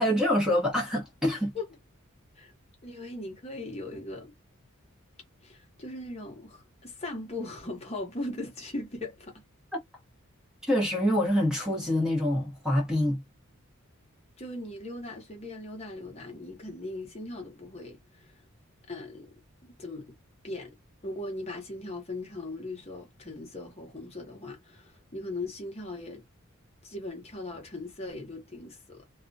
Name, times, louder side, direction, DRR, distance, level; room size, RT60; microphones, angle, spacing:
voice 1, 0.0-1.5 10.7-13.2, left 1 dB, 5° right, 0.8 m, -26 dB
voice 2, 2.8-4.3 5.4-9.4 14.4-18.3 18.9-19.3 19.6-20.2 20.4-20.8 21.0-26.2 26.8-29.0, left 2 dB, 30° left, 0.8 m, -39 dB
2.3 x 2.1 x 2.5 m
head